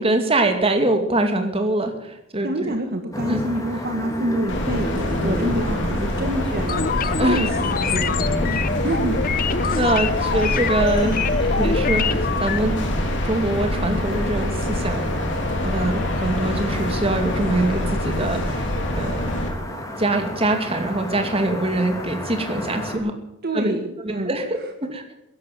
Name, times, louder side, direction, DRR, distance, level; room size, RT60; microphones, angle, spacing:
voice 1, 0.0-2.8 3.3-3.4 7.1-7.4 9.8-12.7 13.2-15.1 15.6-18.7 18.9-19.2 19.7-23.1 23.5-23.7 24.3-24.6 24.9-25.0, right 2 dB, 30° right, 5 dB, 2.4 m, -23 dB
voice 2, 2.4-6.9 7.2-8.6 8.8-9.2 23.4-24.4, right 1 dB, 50° right, 5 dB, 1.7 m, -27 dB
sound 1, 3.1-23.0, equal, 15° left, 3.0 m, -32 dB
sound 2, 4.5-19.5, left 1 dB, 65° left, 3.4 m, -25 dB
sound 3, 6.7-12.6, left 6 dB, 45° left, 0.7 m, -25 dB
14.5 x 11.0 x 7.8 m, 0.90 s
head